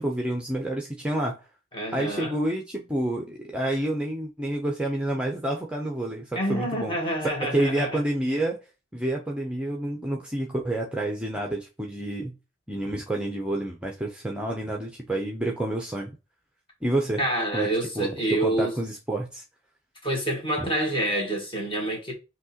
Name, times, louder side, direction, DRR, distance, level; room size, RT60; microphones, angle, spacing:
voice 1, 0.0-1.4 1.9-7.0 7.4-8.6 8.9-12.3 12.7-16.1 16.8-17.2 17.5-17.7 18.0-19.4 20.6-20.7, right 1 dB, 5° right, 0.6 m, -29 dB
voice 2, 1.7-2.3 6.4-8.0 17.2-18.7 20.0-22.1, right 1 dB, 25° left, 1.7 m, -27 dB
6.0 x 2.8 x 2.8 m
head